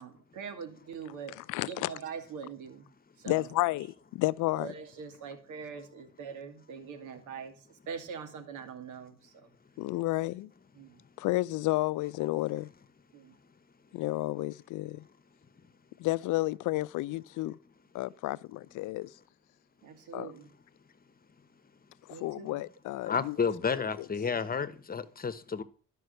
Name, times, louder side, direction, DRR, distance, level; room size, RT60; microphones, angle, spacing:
voice 1, 0.0-1.4 1.7-2.9 3.2-3.6 4.6-9.5 10.7-11.0 13.1-13.4 19.8-20.5 22.1-22.6, right 6 dB, 90° right, 2.2 m, -43 dB
voice 2, 1.5-1.9 3.3-3.9 4.1-4.7 9.8-10.5 11.2-12.7 13.9-15.0 16.0-17.6 17.9-19.1 20.1-20.3 22.0-23.4 23.7-24.1, left 18 dB, 85° left, 0.5 m, -31 dB
voice 3, 23.1-25.6, left 5 dB, 30° left, 1.1 m, -31 dB
12.5 x 5.5 x 6.6 m
cardioid pair, 90°, 30 cm